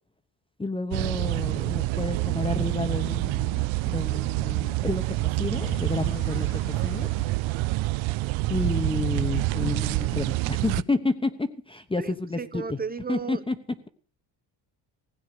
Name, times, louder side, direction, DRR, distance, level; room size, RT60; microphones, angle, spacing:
voice 1, 0.6-7.1 8.5-12.8 13.1-13.6, left 3 dB, 10° left, 10 dB, 1.0 m, -30 dB
sound 1, 0.9-10.8, right 20 dB, 85° right, 0.6 m, -27 dB
sound 2, 5.4-8.6, left 8 dB, 30° left, 0.6 m, -43 dB
voice 2, 12.0-13.4, right 5 dB, 20° right, 14 dB, 0.6 m, -34 dB
16.5 x 9.5 x 6.7 m, 0.39 s
cardioid pair, 140°, 46 cm